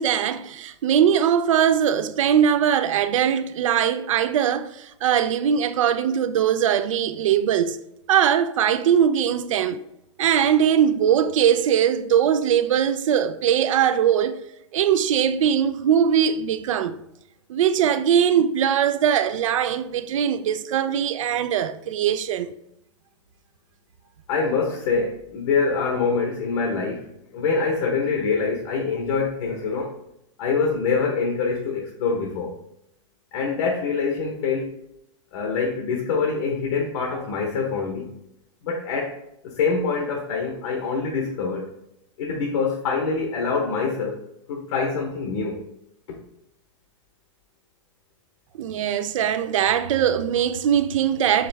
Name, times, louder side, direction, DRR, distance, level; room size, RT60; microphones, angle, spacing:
voice 1, 0.0-7.8 8.1-9.8 10.2-14.4 14.7-17.0 17.5-22.5 48.6-51.5, right 9 dB, 85° right, 0.4 m, -21 dB
voice 2, 24.3-27.1 27.3-29.9 30.4-32.5 33.3-34.8 35.3-38.1 38.6-39.2 39.4-41.7 42.2-44.2 44.5-45.6, left 4 dB, 70° left, 0.9 m, -25 dB
4.9 x 3.1 x 3.4 m
supercardioid pair, 145°, 16 cm